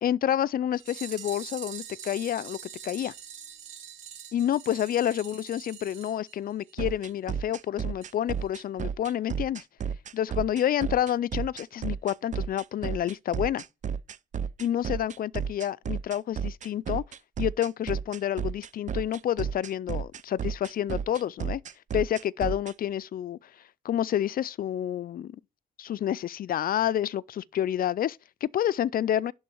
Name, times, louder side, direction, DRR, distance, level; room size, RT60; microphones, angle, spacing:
voice 1, 0.0-2.6 2.8-3.1 4.3-9.6 10.1-13.6 14.6-17.0 17.4-21.6 21.9-23.4 23.8-25.4 25.8-29.3, left 11 dB, 45° left, 0.4 m, -29 dB
sound 1, 0.7-6.9 7.2-7.3 7.5-7.6 8.0-8.1 8.4-8.5, right 8 dB, 75° right, 1.9 m, -44 dB
sound 2, 6.8-22.7, right 7 dB, 40° right, 0.5 m, -32 dB
11.0 x 3.8 x 4.5 m
cardioid pair, 90°, 20 cm